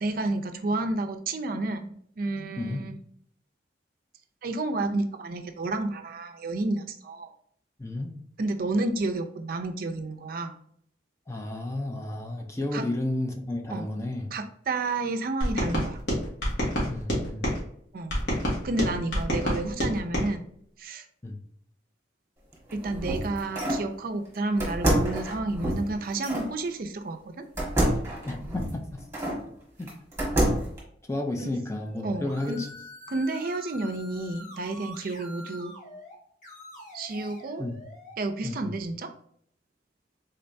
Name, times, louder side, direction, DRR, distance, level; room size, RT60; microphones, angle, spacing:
voice 1, 0.0-2.9 4.4-7.3 8.4-10.5 12.7-12.8 13.7-13.9 14.3-16.0 17.9-18.2 18.6-20.4 20.8-21.0 22.7-27.4 31.4-31.5 32.0-32.6 33.1-35.7 36.9-37.7 38.2-39.1, right 2 dB, 50° right, 6 dB, 0.4 m, -30 dB
voice 2, 7.8-8.1 11.3-14.3 16.8-17.5 21.2-21.3 28.2-29.0 29.8-29.9 30.5-30.6 31.1-32.7 37.6-37.8 38.4-38.7, left 1 dB, 15° left, 3 dB, 0.5 m, -32 dB
sound 1, 15.4-17.6 18.1-20.3, equal, 65° left, 1.5 m, -28 dB
sound 2, 22.5-23.9 24.6-26.5 27.6-29.4 29.9-30.8, right 1 dB, 15° right, 1.4 m, -27 dB
sound 3, 31.7-36.2 36.4-38.2, equal, 45° left, 1.6 m, -45 dB
3.8 x 3.3 x 2.6 m, 0.66 s
head